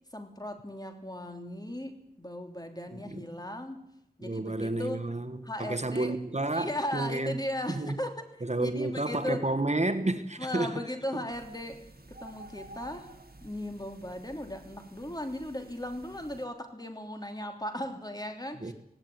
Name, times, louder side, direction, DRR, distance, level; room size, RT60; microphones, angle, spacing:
voice 1, 0.0-3.9 4.2-5.0 5.4-6.2 6.5-9.5 10.4-11.8 12.1-13.1 13.4-18.7, left 1 dB, 25° left, 3.2 m, -37 dB
voice 2, 4.2-7.4 7.7-7.9 8.4-10.7 18.6-18.7, right 2 dB, 45° right, 1.3 m, -31 dB
sound 1, 11.3-16.5, right 2 dB, 80° right, 1.8 m, -51 dB
17.0 x 17.0 x 9.4 m
wide cardioid pair, 50°, 16 cm